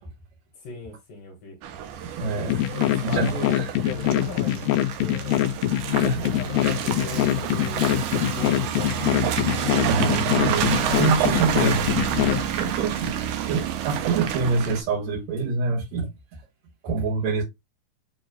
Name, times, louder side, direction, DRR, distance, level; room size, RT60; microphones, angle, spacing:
voice 1, 0.5-1.6 2.4-5.4 6.0-8.9 12.3-12.5, left 3 dB, 70° left, 2.5 m, -38 dB
Car passing by / Engine, 1.6-14.8, right 9 dB, 85° right, 1.7 m, -28 dB
voice 2, 2.0-2.6 3.0-3.7 5.8-6.3 9.9-12.3 12.6-13.1 13.5-16.1 16.8-17.4, right 4 dB, 55° right, 2.3 m, -26 dB
sound 1, 2.5-12.4, left 13 dB, 85° left, 2.0 m, -23 dB
7.3 x 3.1 x 2.2 m
omnidirectional pair, 4.5 m